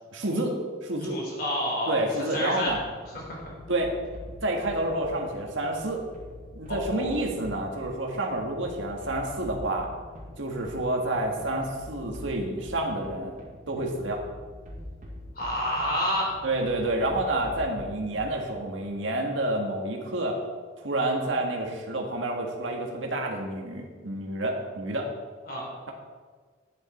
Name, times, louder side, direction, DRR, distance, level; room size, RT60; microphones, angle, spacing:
voice 1, 0.1-0.6 0.8-1.2 1.9-2.8 3.7-3.9 4.4-6.0 6.5-9.9 10.4-13.4 13.7-14.2 16.4-20.4 20.8-25.1, right 1 dB, 85° right, 1 dB, 1.8 m, -29 dB
voice 2, 1.1-2.0 2.3-2.7 6.7-7.1 15.3-16.3 25.5-25.6, equal, 50° left, -3 dB, 3.8 m, -29 dB
sound 1, 2.7-18.6, left 1 dB, 40° right, 2.1 m, -44 dB
11.5 x 9.6 x 4.4 m, 1.5 s
head